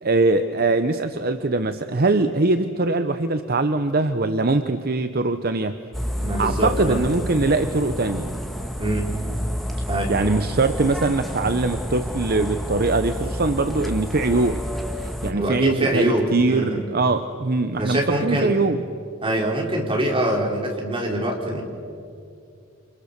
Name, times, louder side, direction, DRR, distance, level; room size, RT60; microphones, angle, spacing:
voice 1, 0.0-5.8 6.4-8.4 10.1-14.6 15.0-18.8, right 3 dB, 50° right, 9 dB, 0.8 m, -22 dB
sound 1, 5.9-15.3, equal, ahead, 1.8 m, -29 dB
voice 2, 6.1-7.0 8.8-9.1 9.9-10.1 15.3-16.8 17.8-18.5 19.2-21.6, right 1 dB, 25° right, -1 dB, 4.2 m, -24 dB
29.0 x 27.5 x 6.8 m, 2.4 s
head